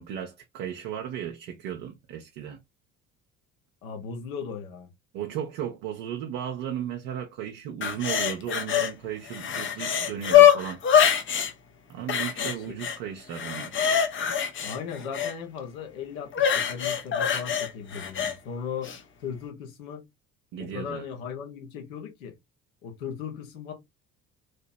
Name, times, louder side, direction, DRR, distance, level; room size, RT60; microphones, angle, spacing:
voice 1, 0.0-2.6 5.1-10.8 11.9-13.7 14.0-14.2 20.5-21.1, right 9 dB, 55° right, 0.7 m, -35 dB
voice 2, 3.8-4.9 12.4-12.5 14.6-18.9 19.2-20.0 20.6-22.3 22.8-23.7, left 6 dB, 70° left, 1.1 m, -37 dB
sound 1, 7.8-8.9 9.3-11.5 12.1-13.0 13.3-15.3 16.3-18.3 18.8-19.0, left 9 dB, 30° left, 0.6 m, -23 dB
3.3 x 2.9 x 2.7 m
figure-of-eight pair, 50°, 43 cm